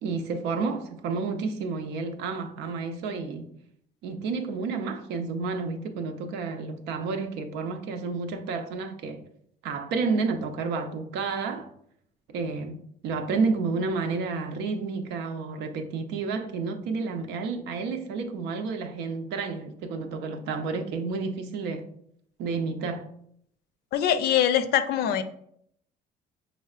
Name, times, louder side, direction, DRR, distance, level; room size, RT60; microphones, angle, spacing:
voice 1, 0.0-3.5 4.0-9.2 9.6-11.7 12.3-12.8 13.0-21.8 22.4-23.1, right 4 dB, 90° right, 0.6 m, -30 dB
voice 2, 23.9-25.2, left 10 dB, 75° left, 0.5 m, -23 dB
5.5 x 3.2 x 2.4 m
cardioid pair, 110°, 17 cm